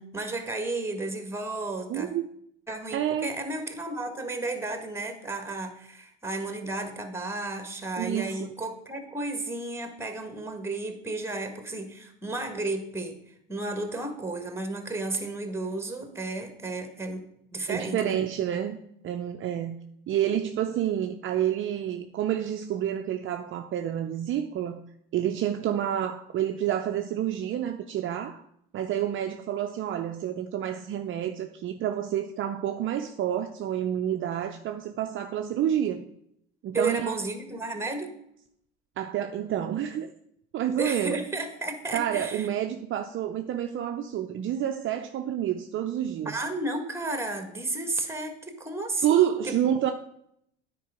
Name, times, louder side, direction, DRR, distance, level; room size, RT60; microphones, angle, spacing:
voice 1, 0.0-2.1 2.7-13.2 13.5-18.2 36.7-38.1 40.8-42.5 46.2-49.6, right 2 dB, 10° right, 1.6 m, -33 dB
voice 2, 1.9-2.3 2.9-3.3 8.0-8.5 17.7-18.8 19.0-19.8 20.1-24.8 25.1-28.4 28.7-36.0 36.6-37.2 39.0-40.1 40.5-41.2 41.9-46.4 49.0-49.9, right 10 dB, 45° right, 0.6 m, -28 dB
9.3 x 4.6 x 4.9 m
hypercardioid pair, 80°, 29 cm